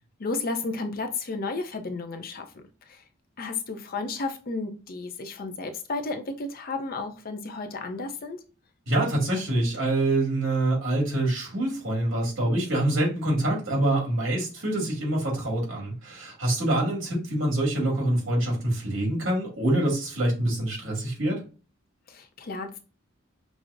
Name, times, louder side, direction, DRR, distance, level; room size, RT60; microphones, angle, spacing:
voice 1, 0.2-3.0 3.4-8.4 22.1-22.8, left 3 dB, 50° left, 6 dB, 0.6 m, -33 dB
voice 2, 8.9-21.4, right 1 dB, 80° right, -1 dB, 2.0 m, -25 dB
6.0 x 2.0 x 2.5 m, 0.35 s
head